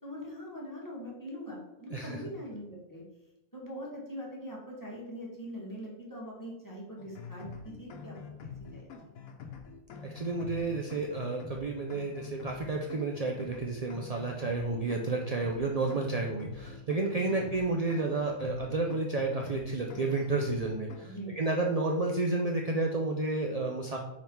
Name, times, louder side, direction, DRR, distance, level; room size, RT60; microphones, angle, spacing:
voice 1, 0.0-3.0 3.5-8.2 8.7-8.9 17.3-17.4 21.1-21.9, equal, 15° left, -4 dB, 1.7 m, -42 dB
sound 1, 7.0-21.1, left 5 dB, 80° left, 1.2 m, -45 dB
voice 2, 10.0-24.0, right 3 dB, 55° right, 1 dB, 0.4 m, -31 dB
5.3 x 4.8 x 4.5 m, 0.92 s
omnidirectional pair, 1.4 m